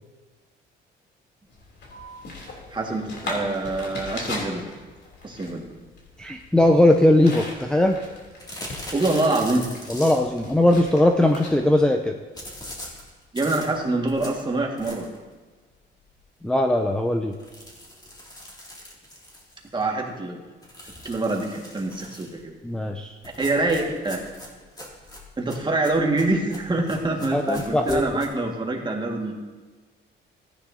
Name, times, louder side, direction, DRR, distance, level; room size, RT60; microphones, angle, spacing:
sound 1, 1.5-11.8, left 2 dB, 60° left, 3.1 m, -39 dB
voice 1, 2.7-4.6 5.2-5.7 8.9-9.7 13.3-15.1 19.7-20.4 21.0-22.5 23.4-24.2 25.4-29.3, right 2 dB, 25° right, 0 dB, 1.8 m, -25 dB
voice 2, 6.2-8.0 9.9-12.2 16.4-17.3 22.6-23.2 27.3-28.2, left 1 dB, 5° left, 4 dB, 0.6 m, -19 dB
sound 2, 8.4-10.5 12.4-15.3 15.7-15.8 16.2-16.3 16.5-16.6 17.3-19.8 20.6-22.4 23.2-28.3, left 1 dB, 20° left, 2.5 m, -41 dB
14.5 x 9.9 x 2.8 m, 1.3 s
cardioid pair, 90°, 20 cm